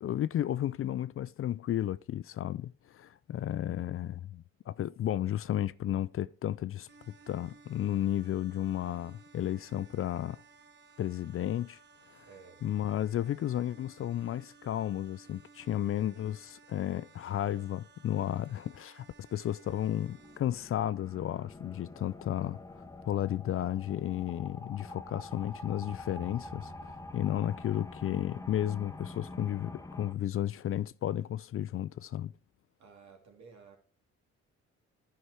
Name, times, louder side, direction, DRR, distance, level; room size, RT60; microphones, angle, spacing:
voice 1, 0.0-10.4 11.0-11.8 12.1-12.2 12.6-22.6 23.1-32.3, left 11 dB, 45° left, 0.4 m, -33 dB
sound 1, 6.9-20.4, right 5 dB, 35° right, 1.4 m, -58 dB
voice 2, 12.2-12.6 32.8-33.8, right 5 dB, 65° right, 2.9 m, -54 dB
sound 2, 19.6-30.1, left 2 dB, 10° left, 1.2 m, -46 dB
11.0 x 5.8 x 4.8 m
cardioid pair, 90°, 30 cm